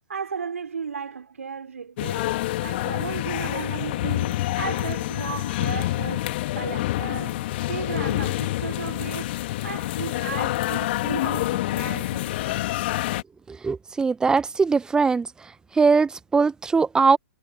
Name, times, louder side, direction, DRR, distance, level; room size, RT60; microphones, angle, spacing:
voice 1, 0.0-2.3 2.6-9.4 9.6-12.9, right 6 dB, 70° right, 4.1 m, -35 dB
sound 1, 2.0-13.2, left 16 dB, 45° left, 2.5 m, -27 dB
voice 2, 13.5-15.3 15.8-17.2, right 4 dB, 10° right, 1.4 m, -21 dB
figure-of-eight pair, 115°, 8 cm